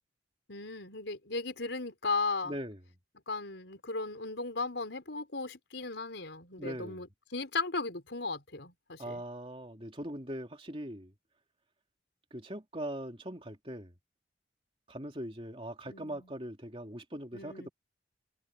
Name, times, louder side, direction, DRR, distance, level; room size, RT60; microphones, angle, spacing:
voice 1, 0.5-2.5 3.3-9.2 15.9-16.3 17.3-17.7, left 3 dB, 70° left, 4.4 m, -36 dB
voice 2, 2.4-2.8 6.6-7.0 9.0-11.1 12.3-13.9 14.9-17.7, right 1 dB, 30° right, 2.9 m, -41 dB
head